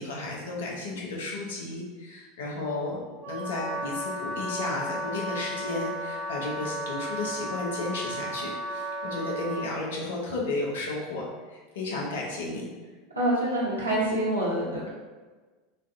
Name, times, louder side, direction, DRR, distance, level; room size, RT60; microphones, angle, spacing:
voice 1, 0.0-3.0 3.2-12.7, left 2 dB, 65° left, -3 dB, 0.6 m, -33 dB
Wind instrument woodwind instrument, 3.2-9.7, equal, 35° right, 0.3 m, -34 dB
voice 2, 13.1-14.9, right 1 dB, 80° right, -6 dB, 0.6 m, -26 dB
2.5 x 2.3 x 2.4 m, 1.3 s
figure-of-eight pair, 80°, 0 cm